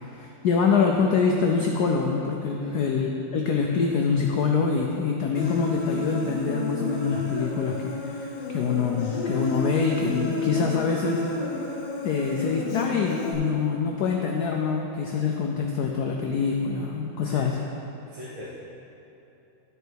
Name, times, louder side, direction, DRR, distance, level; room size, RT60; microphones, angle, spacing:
voice 1, 0.0-11.5 12.0-17.6, left 5 dB, 80° left, 1 dB, 0.8 m, -25 dB
voice 2, 2.5-2.9 17.3-17.4 18.1-18.5, right 1 dB, 70° right, -7 dB, 1.9 m, -38 dB
Human voice, 5.3-13.3, left 2 dB, 65° left, 1.6 m, -31 dB
12.0 x 5.1 x 4.5 m, 3.0 s
omnidirectional pair, 2.4 m